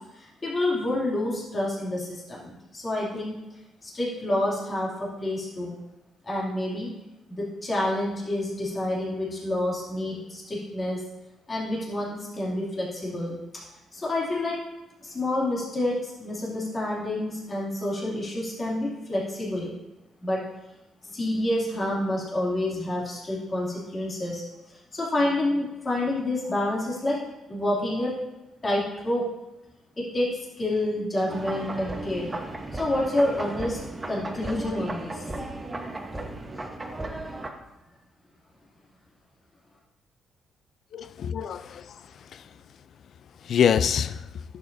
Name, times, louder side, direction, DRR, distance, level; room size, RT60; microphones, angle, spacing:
voice 1, 0.1-3.4 3.8-5.8 6.2-6.9 7.3-11.0 11.5-13.4 13.9-14.6 15.0-19.7 20.2-20.4 21.0-24.4 24.7-27.2 27.5-28.1 28.6-29.2 30.0-30.3 30.6-32.3 32.7-33.8 34.1-35.2, left 1 dB, 30° left, 2.6 m, -28 dB
sound 1, 31.3-37.5, right 2 dB, 20° right, 1.0 m, -35 dB
voice 2, 40.9-42.5 43.4-44.4, left 8 dB, 60° left, 0.3 m, -26 dB
11.0 x 7.7 x 2.7 m
cardioid pair, 90°, 0 cm